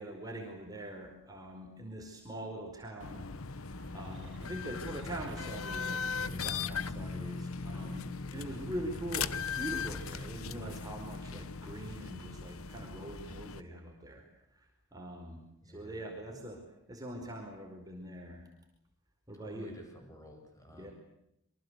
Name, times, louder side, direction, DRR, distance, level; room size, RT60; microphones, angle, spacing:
voice 1, 0.0-3.3 3.6-14.2 14.5-16.6 16.9-18.5 19.3-19.7 20.7-20.9, right 1 dB, 20° right, 1 dB, 4.8 m, -43 dB
Ticket machine kiosk train subway underground metro station, 3.0-13.6, left 5 dB, 70° left, 1.1 m, -39 dB
sound 1, 3.0-7.7 8.4-11.7 12.5-12.6, right 1 dB, 60° right, 1.8 m, -55 dB
voice 2, 15.6-16.4 19.3-20.9, equal, 15° left, 3 dB, 8.0 m, -52 dB
27.5 x 24.5 x 8.2 m, 0.80 s
head